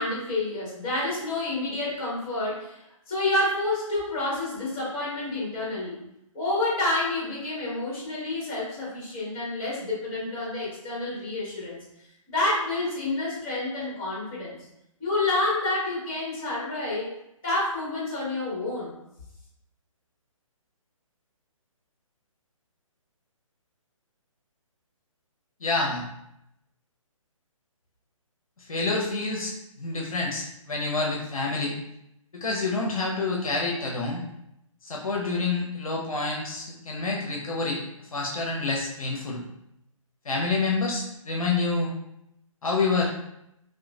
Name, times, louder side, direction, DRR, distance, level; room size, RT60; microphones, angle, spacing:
voice 1, 0.0-2.8 3.1-6.0 6.3-11.8 12.3-14.6 15.0-17.1 17.4-18.9, left 2 dB, 25° left, -7 dB, 1.4 m, -28 dB
voice 2, 25.6-26.0 28.6-31.7 32.3-34.2 34.8-37.8 38.1-39.4 40.2-41.9 42.6-43.1, left 3 dB, 75° left, -2 dB, 0.6 m, -28 dB
3.0 x 2.1 x 2.3 m, 0.81 s
figure-of-eight pair, 140°, 18 cm